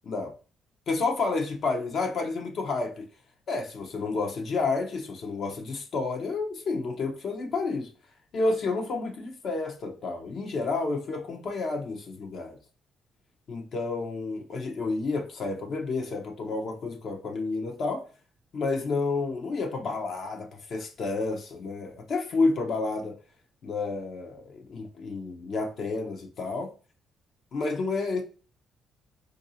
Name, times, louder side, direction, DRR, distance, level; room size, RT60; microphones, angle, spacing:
voice 1, 0.9-3.0 3.5-7.9 8.3-12.6 13.5-18.1 18.5-23.2 23.6-26.7 27.5-28.2, left 3 dB, 60° left, 0.7 m, -30 dB
3.9 x 2.5 x 2.7 m
cardioid pair, 90°, 0 cm